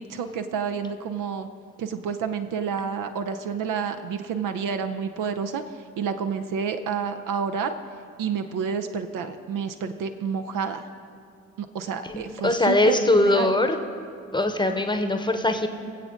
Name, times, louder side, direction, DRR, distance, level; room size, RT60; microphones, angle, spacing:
voice 1, 0.0-1.5 1.8-7.7 8.2-10.9 11.6-13.5, right 6 dB, 55° right, 8 dB, 0.8 m, -29 dB
voice 2, 12.0-13.8 14.3-15.7, left 1 dB, 10° left, 7 dB, 1.0 m, -21 dB
24.0 x 8.0 x 3.7 m, 2.4 s
figure-of-eight pair, 40°, 39 cm